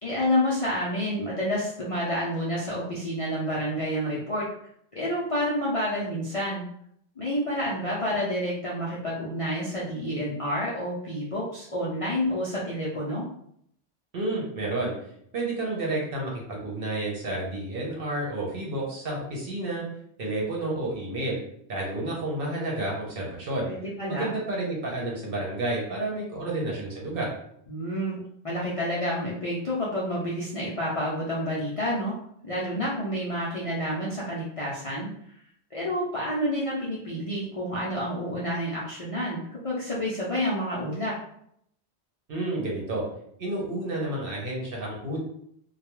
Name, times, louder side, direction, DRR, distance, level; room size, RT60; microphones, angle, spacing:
voice 1, 0.0-4.5 4.9-6.7 7.2-13.2 23.7-24.3 27.7-32.1 32.4-35.1 35.7-41.1, equal, 45° left, -7 dB, 0.4 m, -29 dB
voice 2, 14.1-14.9 15.3-19.9 20.2-21.4 21.7-23.7 24.1-27.3 42.3-43.0 43.4-45.2, right 2 dB, 60° right, -3 dB, 0.9 m, -30 dB
2.3 x 2.2 x 3.0 m, 0.70 s
omnidirectional pair, 1.1 m